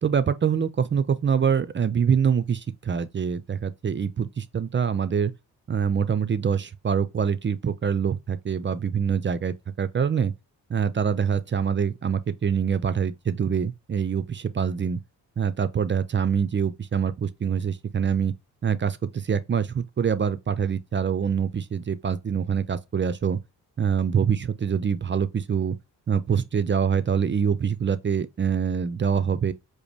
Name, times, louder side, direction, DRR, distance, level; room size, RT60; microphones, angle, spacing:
voice 1, 0.0-5.3 5.7-10.3 10.7-15.0 15.4-18.3 18.6-23.4 23.8-25.8 26.1-29.5, right 7 dB, 30° right, 0.4 m, -25 dB
4.8 x 2.0 x 3.2 m
supercardioid pair, 50°, 42 cm